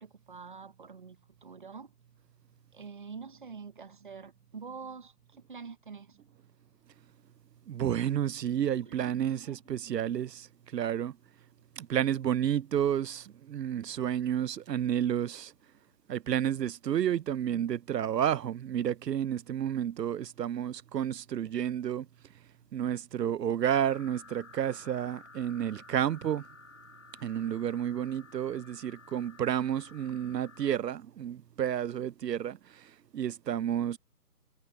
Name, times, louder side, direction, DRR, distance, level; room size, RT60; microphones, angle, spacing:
voice 1, 0.0-1.9 2.7-5.1 5.5-6.2 8.9-9.8, right 5 dB, 30° right, 1.0 m, -46 dB
voice 2, 7.7-11.2 11.8-15.5 16.1-22.1 22.7-26.5 27.2-34.0, right 10 dB, 80° right, 0.7 m, -31 dB
sound 1, 23.7-30.8, left 4 dB, 50° left, 6.9 m, -54 dB
hypercardioid pair, 175°, 48 cm